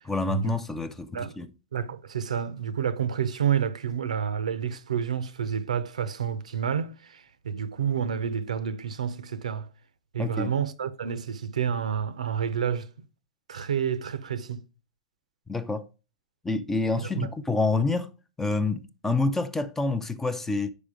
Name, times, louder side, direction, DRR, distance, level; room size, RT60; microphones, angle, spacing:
voice 1, 0.1-1.5 10.2-10.5 15.5-15.9 16.4-18.1 18.4-20.7, left 3 dB, 10° left, 0.4 m, -27 dB
voice 2, 1.7-9.7 10.1-12.9 13.5-14.6 17.0-17.3, right 8 dB, 80° right, 0.6 m, -29 dB
5.0 x 5.0 x 4.9 m
hypercardioid pair, 115°, 4 cm